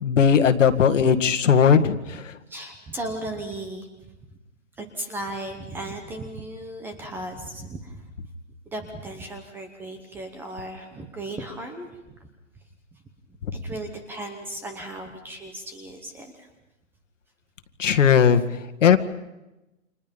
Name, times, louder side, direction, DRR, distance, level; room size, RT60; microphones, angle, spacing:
voice 1, 0.0-2.4 17.8-19.0, left 7 dB, 65° left, 10 dB, 2.1 m, -18 dB
voice 2, 2.5-3.9 4.8-8.1 8.7-12.3 12.9-13.0 13.5-16.5, right 1 dB, 5° right, 6 dB, 0.9 m, -36 dB
30.0 x 27.0 x 5.3 m, 0.99 s
hypercardioid pair, 160°, 40 cm